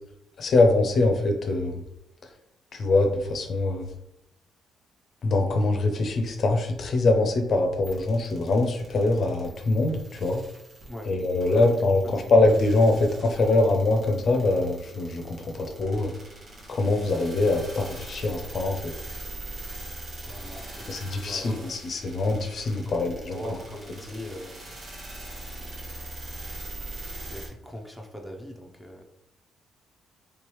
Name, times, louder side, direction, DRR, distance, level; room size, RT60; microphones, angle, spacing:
voice 1, 0.4-1.8 2.7-3.9 5.2-10.4 11.1-16.1 16.7-18.9 20.9-23.4, left 2 dB, 55° left, 4 dB, 0.5 m, -23 dB
sound 1, 7.8-27.5, right 1 dB, 55° right, 1.1 m, -42 dB
voice 2, 11.5-12.3 20.2-21.7 22.8-24.7 27.3-29.0, equal, ahead, 1 dB, 0.6 m, -41 dB
3.3 x 3.1 x 3.0 m, 0.85 s
cardioid pair, 90°, 0 cm